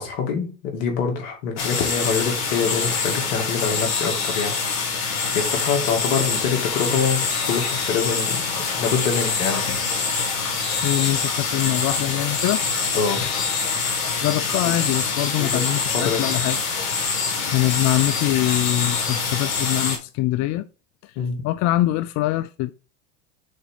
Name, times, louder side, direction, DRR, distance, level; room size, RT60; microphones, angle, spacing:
voice 1, 0.0-4.6 5.3-8.4 8.8-9.8 12.9-13.2 15.3-15.6 15.9-16.3 21.2-21.4, left 6 dB, 75° left, 2.5 m, -25 dB
sound 1, 1.6-20.0, left 5 dB, 90° left, 2.0 m, -25 dB
voice 2, 10.8-12.8 13.2-13.3 14.2-16.6 17.5-20.7 21.0-21.1 21.4-22.7, left 16 dB, 45° left, 0.4 m, -23 dB
6.5 x 4.2 x 4.0 m
hypercardioid pair, 100°, 40 cm